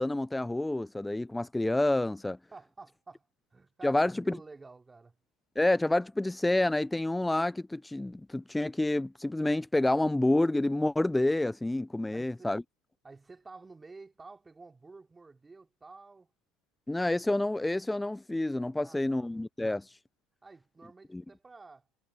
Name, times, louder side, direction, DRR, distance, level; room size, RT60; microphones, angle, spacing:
voice 1, 0.0-2.4 3.8-4.4 5.6-12.6 16.9-19.8 21.1-21.2, left 1 dB, 5° left, 0.6 m, -28 dB
voice 2, 2.5-5.2 12.1-12.6 13.0-16.3 18.6-19.3 20.4-21.9, right 3 dB, 15° right, 3.3 m, -51 dB
hypercardioid pair, 85°, 0 cm